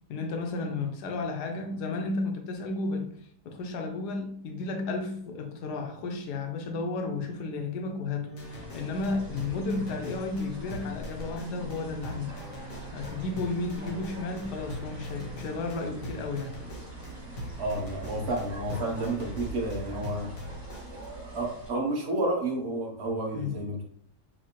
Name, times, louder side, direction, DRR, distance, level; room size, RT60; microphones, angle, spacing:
voice 1, 0.1-3.1 3.4-12.3 12.9-16.5 23.3-23.5, left 3 dB, 80° left, 1.2 m, -33 dB
sound 1, 8.3-21.0, equal, 45° left, 0.8 m, -42 dB
sound 2, 8.4-21.7, right 2 dB, 90° right, 2.6 m, -44 dB
voice 2, 17.6-20.3 20.9-23.8, right 1 dB, 45° right, 1.0 m, -31 dB
5.8 x 2.0 x 3.0 m
omnidirectional pair, 1.8 m